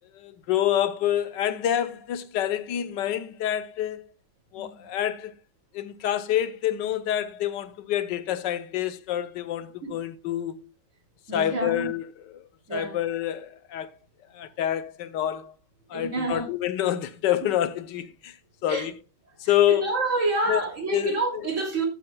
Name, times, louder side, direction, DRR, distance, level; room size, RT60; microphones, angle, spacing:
voice 1, 0.1-4.1 4.5-5.3 5.7-10.7 11.3-13.9 14.3-15.5 15.9-18.4 18.6-19.0 19.4-19.9 20.5-21.5, left 11 dB, 80° left, 1.4 m, -27 dB
voice 2, 11.3-11.9 12.7-13.0 15.9-16.4 18.7-18.8 19.8-21.9, right 2 dB, 45° right, 3.1 m, -28 dB
13.0 x 9.6 x 2.3 m
omnidirectional pair, 1.9 m